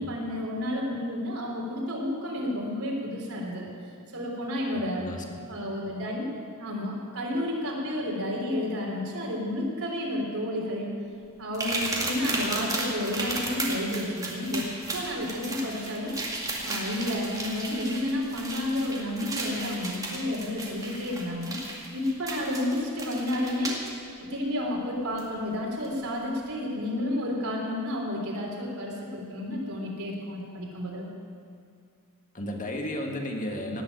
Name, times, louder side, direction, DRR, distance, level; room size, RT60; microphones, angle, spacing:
voice 1, 0.0-3.7 4.1-5.0 5.5-6.3 6.6-10.9 11.4-16.1 16.6-21.5 21.9-23.8 24.3-31.1, left 1 dB, 75° right, -2 dB, 3.6 m, -31 dB
voice 2, 5.0-5.4 32.3-33.8, left 1 dB, 35° left, 2 dB, 1.6 m, -33 dB
sound 1, 11.5-23.9 25.2-25.3 25.8-26.0, right 2 dB, 15° right, 2.2 m, -34 dB
18.0 x 7.5 x 8.8 m, 2.3 s
head